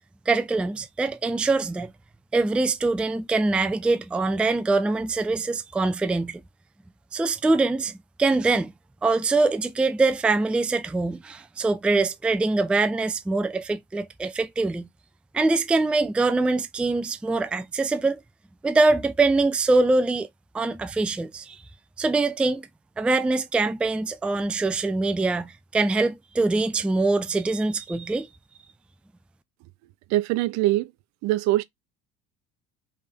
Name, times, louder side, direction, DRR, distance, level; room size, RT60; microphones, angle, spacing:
voice 1, 0.3-1.9 2.3-6.4 7.1-8.7 9.0-14.9 15.3-18.2 18.6-20.3 20.5-21.6 22.0-22.7 23.0-28.3, right 3 dB, 5° right, 0.3 m, -23 dB
voice 2, 30.1-30.9 31.2-31.6, right 16 dB, 70° right, 0.6 m, -22 dB
3.3 x 3.3 x 2.7 m
supercardioid pair, 90°, 29 cm